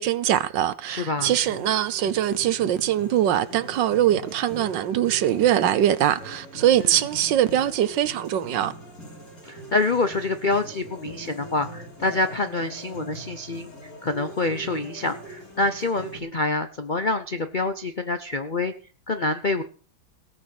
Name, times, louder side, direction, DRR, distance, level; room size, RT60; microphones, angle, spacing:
voice 1, 0.0-8.7, right 11 dB, 70° right, 1.4 m, -22 dB
voice 2, 0.9-1.3 9.4-18.7 19.1-19.6, left 2 dB, 75° left, 0.4 m, -26 dB
sound 1, 1.2-16.2, right 1 dB, 45° left, 5.9 m, -41 dB
18.0 x 6.3 x 7.7 m
omnidirectional pair, 2.2 m